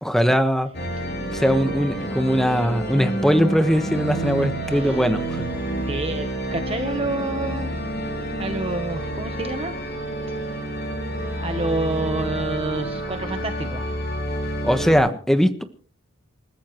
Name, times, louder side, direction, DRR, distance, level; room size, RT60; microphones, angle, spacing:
voice 1, 0.0-0.7 1.3-5.4 14.6-15.6, equal, ahead, 8 dB, 1.3 m, -20 dB
sound 1, 0.7-15.0, right 1 dB, 50° left, 7.4 m, -29 dB
voice 2, 4.4-5.0 5.9-7.7 8.4-9.8 10.4-10.5 11.4-13.9, right 2 dB, 25° right, 7 dB, 1.0 m, -28 dB
28.5 x 14.0 x 3.1 m, 0.40 s
head